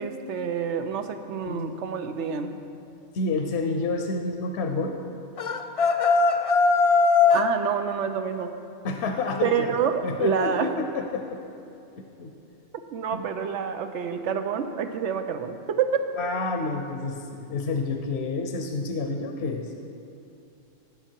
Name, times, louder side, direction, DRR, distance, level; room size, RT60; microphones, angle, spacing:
voice 1, 0.0-2.6 7.3-8.5 9.4-10.7 12.9-16.0, right 7 dB, 90° right, 8 dB, 1.0 m, -27 dB
voice 2, 1.4-1.8 3.1-5.0 8.8-9.8 10.0-11.4 12.0-12.3 13.1-13.2 16.2-19.8, left 3 dB, 70° left, 4 dB, 1.0 m, -29 dB
sound 1, 5.4-7.5, left 4 dB, 45° left, 0.4 m, -20 dB
16.0 x 6.8 x 4.5 m, 2.7 s
omnidirectional pair, 1.2 m